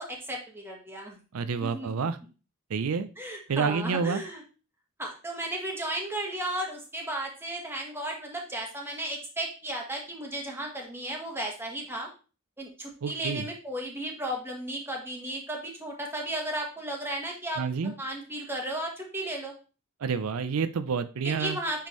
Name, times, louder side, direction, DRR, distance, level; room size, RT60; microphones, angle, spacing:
voice 1, 0.0-1.2 1.6-1.9 3.2-4.4 5.0-12.1 12.6-17.6 18.0-19.5 21.2-21.9, right 1 dB, 10° right, 0 dB, 1.4 m, -34 dB
voice 2, 1.3-2.2 2.7-3.1 3.5-4.2 13.0-13.5 17.6-17.9 20.0-21.6, right 5 dB, 90° right, 11 dB, 0.5 m, -28 dB
9.0 x 3.6 x 3.1 m, 0.34 s
head